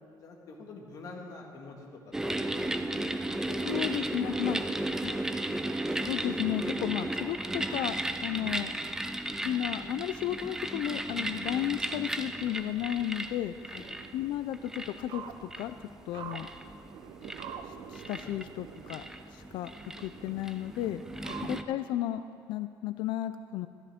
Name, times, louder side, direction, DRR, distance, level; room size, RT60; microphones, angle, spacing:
voice 1, 0.2-1.9 2.2-3.1 3.5-4.1 4.7-4.8 13.6-13.8 18.2-18.3 21.2-21.4, left 3 dB, 45° left, 0 dB, 1.8 m, -46 dB
sound 1, 2.1-21.6, right 1 dB, 5° right, 0.4 m, -35 dB
voice 2, 3.6-4.6 5.0-5.2 5.9-8.7 9.4-13.5 14.1-15.8 16.1-16.5 17.7-19.0 19.3-19.7 20.0-21.0 21.5-22.2 22.5-23.7, left 12 dB, 75° left, 12 dB, 0.4 m, -33 dB
sound 2, 12.2-22.0, right 7 dB, 75° right, 0.7 m, -48 dB
14.5 x 13.0 x 3.6 m, 2.3 s
cardioid pair, 135°, 8 cm